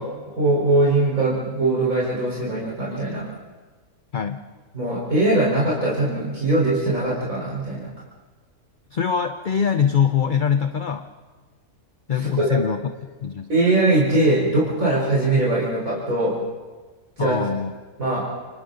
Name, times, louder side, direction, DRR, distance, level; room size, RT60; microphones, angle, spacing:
voice 1, 0.0-3.3 4.7-7.9 12.1-12.6 13.5-16.4 17.2-17.4 18.0-18.2, right 2 dB, 65° right, -6 dB, 4.9 m, -21 dB
voice 2, 8.9-11.1 12.1-12.8 13.2-13.5 17.2-17.7, left 7 dB, 45° left, 7 dB, 0.7 m, -23 dB
28.5 x 26.5 x 4.0 m, 1.3 s
omnidirectional pair, 1.6 m